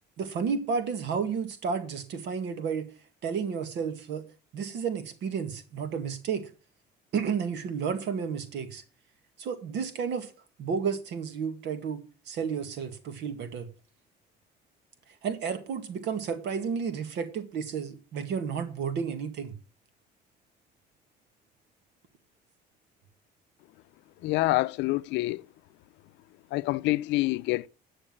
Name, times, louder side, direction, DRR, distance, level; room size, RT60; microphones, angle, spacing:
voice 1, 0.2-2.9 3.2-4.2 4.5-6.5 7.1-8.8 9.4-10.3 10.6-13.7 15.2-19.5, right 6 dB, 75° right, 2.0 m, -32 dB
voice 2, 24.2-25.4 26.5-27.7, left 19 dB, 90° left, 0.5 m, -26 dB
9.7 x 6.5 x 7.6 m
cardioid pair, 110°, 18 cm